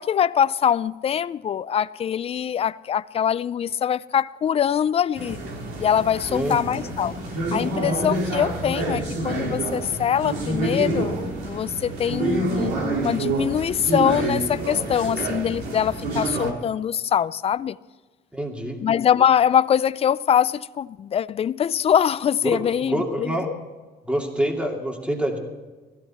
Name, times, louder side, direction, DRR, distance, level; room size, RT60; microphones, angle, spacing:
voice 1, 0.0-5.4 5.8-7.1 7.5-17.8 18.8-23.4, left 9 dB, 35° left, 0.4 m, -23 dB
sound 1, 5.2-16.5, right 2 dB, 75° right, 3.3 m, -27 dB
voice 2, 18.3-18.8 22.4-23.5 24.0-25.4, right 1 dB, 5° right, 2.5 m, -26 dB
16.0 x 15.0 x 4.3 m
cardioid pair, 110°, 17 cm